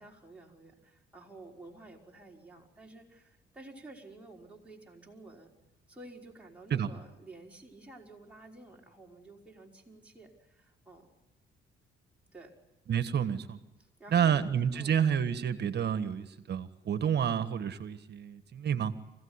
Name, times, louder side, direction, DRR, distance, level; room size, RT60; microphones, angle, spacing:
voice 1, 0.0-5.5 5.9-11.1 12.3-12.5 13.8-14.4 14.7-15.0, right 2 dB, 5° right, -2 dB, 5.6 m, -51 dB
voice 2, 12.9-13.6 14.1-18.9, right 8 dB, 55° right, 11 dB, 1.6 m, -29 dB
25.0 x 17.0 x 9.8 m, 1.1 s
cardioid pair, 90°, 20 cm